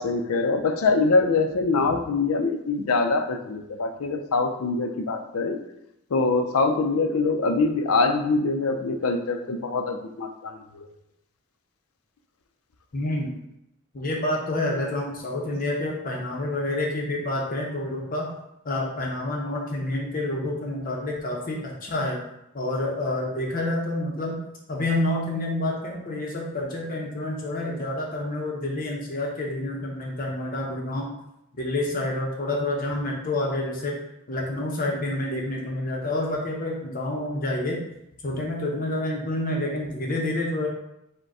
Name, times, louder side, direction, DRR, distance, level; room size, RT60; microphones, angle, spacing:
voice 1, 0.0-5.6 6.1-10.9, left 3 dB, 90° left, 6 dB, 0.5 m, -24 dB
voice 2, 12.9-13.3 13.9-18.3 18.6-22.2 22.5-24.4 24.7-31.1 31.5-34.0 34.3-37.8 38.2-40.7, left 1 dB, 40° left, -1 dB, 0.7 m, -28 dB
4.9 x 2.2 x 4.7 m, 0.84 s
head